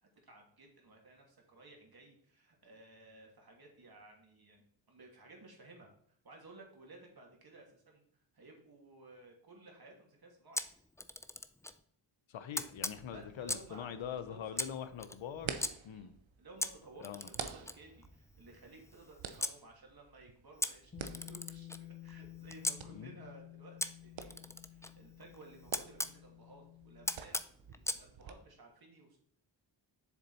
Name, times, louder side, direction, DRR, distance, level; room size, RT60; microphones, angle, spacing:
voice 1, 0.0-10.6 13.1-14.8 15.9-16.1 16.4-20.9 21.2-23.8 24.0-27.4 27.7-29.2, right 2 dB, 55° right, 2.6 m, -57 dB
Camera, 10.5-11.8 12.5-13.8 14.5-15.7 16.6-19.6 20.6-22.8 23.8-26.2 27.1-28.0, left 1 dB, 5° left, 0.4 m, -40 dB
voice 2, 12.3-15.6 15.8-16.1 17.0-17.2 22.9-23.2, left 8 dB, 90° left, 0.9 m, -43 dB
sound 1, 12.8-28.3, right 7 dB, 85° right, 0.8 m, -50 dB
Bass guitar, 20.9-27.2, left 15 dB, 30° left, 0.8 m, -52 dB
7.3 x 6.9 x 4.2 m
wide cardioid pair, 95°, 45 cm